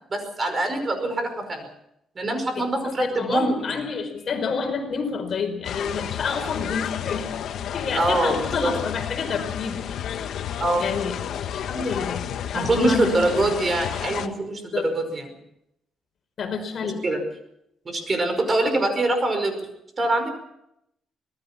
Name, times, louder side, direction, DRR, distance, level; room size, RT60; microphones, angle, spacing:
voice 1, 0.1-1.6 2.2-4.1 7.9-8.7 10.6-10.9 12.5-15.3 16.8-17.2 17.9-19.7 20.0-20.3, right 2 dB, 30° right, 7 dB, 5.2 m, -24 dB
voice 2, 3.0-7.3 7.7-9.8 10.0-10.4 10.8-13.1 13.4-13.5 14.7-14.9 16.4-17.0, left 5 dB, 50° left, 5 dB, 4.8 m, -29 dB
sound 1, 5.6-14.3, left 9 dB, 70° left, 1.5 m, -31 dB
25.5 x 19.5 x 6.0 m, 0.79 s
cardioid pair, 120°, 0 cm